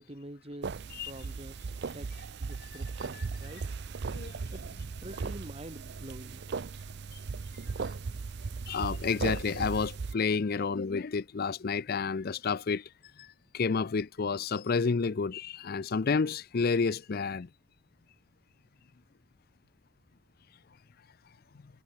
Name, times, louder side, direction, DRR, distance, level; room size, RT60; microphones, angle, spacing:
voice 1, 0.0-1.6 1.9-3.8 4.5-6.5, right 1 dB, 30° right, 2.5 m, -47 dB
sound 1, 0.6-10.1, right 4 dB, 50° right, 0.5 m, -37 dB
voice 2, 4.1-4.5 8.7-12.8 13.5-17.5, left 5 dB, 45° left, 0.5 m, -30 dB
head